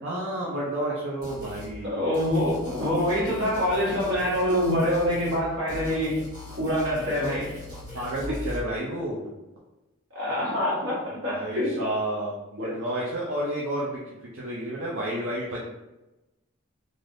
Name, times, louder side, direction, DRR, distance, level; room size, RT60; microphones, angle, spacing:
voice 1, 0.0-2.0 7.9-9.3 11.1-15.6, right 1 dB, 65° right, -5 dB, 0.5 m, -31 dB
sound 1, 1.2-1.7 2.1-5.4 5.7-8.6, left 1 dB, 20° right, 1.4 m, -40 dB
voice 2, 1.9-6.2 6.6-7.5 10.1-11.8 12.6-12.7, equal, 85° right, -7 dB, 1.5 m, -25 dB
3.3 x 2.6 x 2.5 m, 1.0 s
head